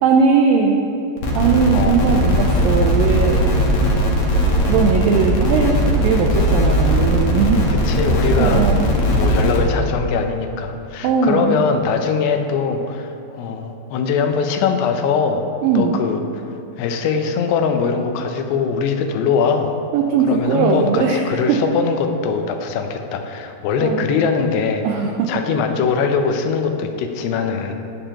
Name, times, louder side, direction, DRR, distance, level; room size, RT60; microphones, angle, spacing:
voice 1, 0.0-0.8 1.3-3.6 4.7-7.6 8.4-8.9 11.0-11.6 15.6-16.0 19.9-21.2 21.5-21.6 23.8-24.0 24.8-25.3, right 5 dB, 90° right, 2 dB, 1.9 m, -18 dB
sound 1, 1.2-9.6, equal, 65° left, 1.5 m, -18 dB
voice 2, 7.7-15.5 15.8-16.4 16.8-19.7 20.3-24.8 25.3-27.7, left 5 dB, 85° left, 5 dB, 2.8 m, -21 dB
19.0 x 6.8 x 2.9 m, 2.9 s
omnidirectional pair, 4.7 m